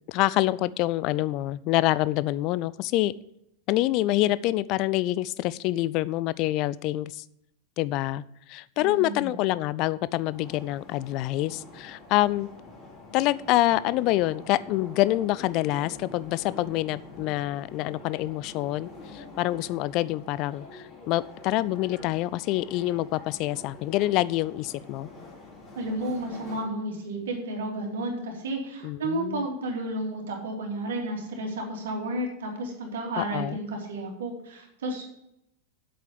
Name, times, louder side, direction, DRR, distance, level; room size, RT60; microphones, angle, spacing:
voice 1, 0.1-3.1 3.7-7.2 7.8-8.2 8.5-12.5 13.1-25.1 28.8-29.5 33.2-33.6, left 16 dB, 40° left, 18 dB, 0.4 m, -26 dB
voice 2, 8.8-9.3 25.7-35.0, right 1 dB, 60° right, 1 dB, 2.9 m, -32 dB
sound 1, 10.3-26.7, left 3 dB, 25° left, 2.9 m, -46 dB
8.3 x 7.7 x 7.0 m, 0.81 s
figure-of-eight pair, 90°, 0 cm